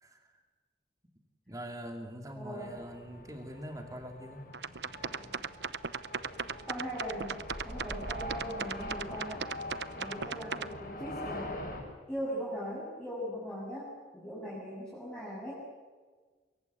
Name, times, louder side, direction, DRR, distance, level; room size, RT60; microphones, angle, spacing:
voice 1, 0.0-0.4 1.5-4.5, equal, 20° right, 4 dB, 2.5 m, -43 dB
voice 2, 2.4-2.8 6.7-7.4 7.6-9.5 10.0-11.6 12.1-15.5, equal, 5° left, -8 dB, 7.4 m, -39 dB
sound 1, 2.6-11.8, left 1 dB, 50° left, 6.6 m, -43 dB
sound 2, 4.5-10.7, right 6 dB, 70° right, 0.9 m, -37 dB
26.0 x 23.0 x 8.3 m, 1.4 s
head